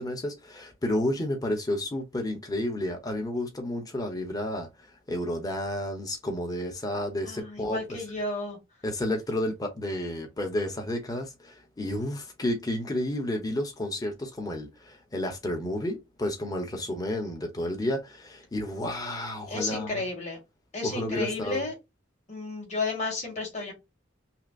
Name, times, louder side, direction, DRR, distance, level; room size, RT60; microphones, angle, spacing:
voice 1, 0.0-4.7 5.1-8.0 8.8-20.0 20.8-21.6, left 1 dB, 20° left, 0.9 m, -31 dB
voice 2, 7.2-8.6 19.5-20.4 20.7-21.7 22.3-23.7, left 3 dB, 40° left, 2.0 m, -32 dB
5.6 x 2.0 x 2.5 m
head